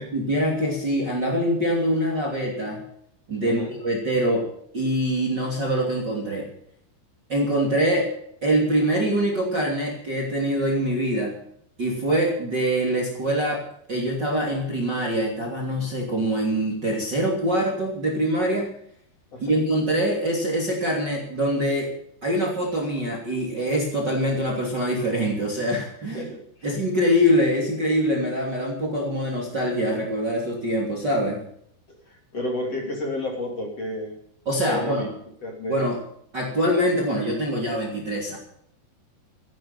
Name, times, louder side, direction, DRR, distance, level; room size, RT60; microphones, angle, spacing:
voice 1, 0.0-2.8 3.3-4.5 4.7-6.5 7.3-8.1 8.4-11.3 11.8-18.7 19.4-21.9 22.2-26.3 26.6-31.4 34.5-35.1 35.7-36.0 36.3-38.4, equal, 25° right, -1 dB, 2.8 m, -24 dB
voice 2, 26.1-26.8 31.9-34.2 34.7-35.1 35.4-35.8, left 1 dB, 35° left, 0 dB, 3.5 m, -31 dB
14.5 x 12.0 x 7.2 m, 0.68 s
omnidirectional pair, 5.3 m